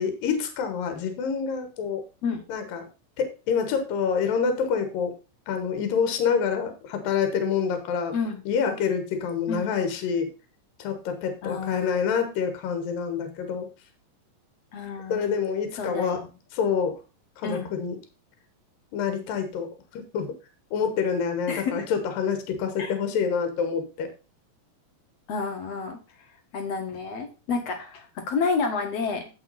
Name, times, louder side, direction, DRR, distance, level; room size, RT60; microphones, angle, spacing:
voice 1, 0.0-2.0 2.5-2.8 3.2-5.1 5.5-8.1 8.5-10.3 10.8-13.7 15.1-16.2 16.5-16.9 17.4-18.0 18.9-20.3 20.7-24.1, left 6 dB, 75° left, 7 dB, 3.1 m, -27 dB
voice 2, 11.4-12.0 14.7-15.3 15.8-16.2 17.4-17.7 21.5-21.9 22.8-22.9 25.3-26.0 26.5-29.3, left 4 dB, 50° left, 5 dB, 2.4 m, -30 dB
9.3 x 7.0 x 4.1 m, 0.31 s
omnidirectional pair, 4.0 m